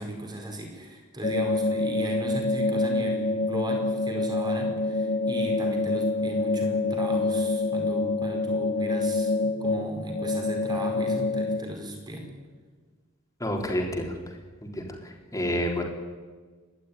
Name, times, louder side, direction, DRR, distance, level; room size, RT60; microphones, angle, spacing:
voice 1, 0.0-12.3, right 1 dB, 20° right, 2 dB, 4.9 m, -36 dB
sound 1, 1.2-11.6, left 3 dB, 40° left, 2.2 m, -26 dB
voice 2, 13.4-14.1 14.7-14.9 15.3-15.8, equal, 15° left, 1 dB, 3.6 m, -28 dB
29.5 x 12.0 x 9.8 m, 1.4 s
head